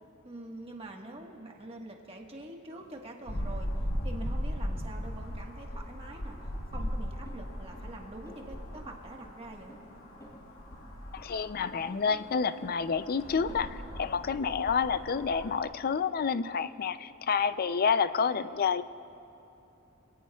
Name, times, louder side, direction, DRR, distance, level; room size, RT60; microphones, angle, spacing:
voice 1, 0.2-3.7 4.0-6.4 6.7-9.8, right 1 dB, 30° right, 1 dB, 1.4 m, -45 dB
sound 1, 2.8-13.6, equal, 20° left, 3.1 m, -54 dB
sound 2, 3.3-15.6, equal, 75° left, 1.6 m, -38 dB
voice 2, 11.1-18.8, left 6 dB, 45° left, 13 dB, 0.4 m, -29 dB
26.0 x 18.0 x 2.3 m, 2.9 s
head